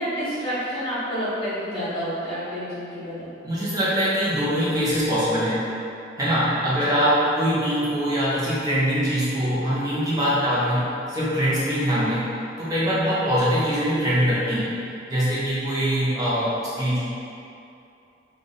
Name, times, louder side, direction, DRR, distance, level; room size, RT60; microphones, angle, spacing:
voice 1, 0.0-3.3 6.6-7.0, equal, 25° left, -15 dB, 1.5 m, -29 dB
voice 2, 3.4-5.6 6.2-12.2 12.6-14.7 15.1-17.0, equal, 20° right, -10 dB, 1.0 m, -23 dB
3.4 x 2.5 x 4.0 m, 2.7 s
head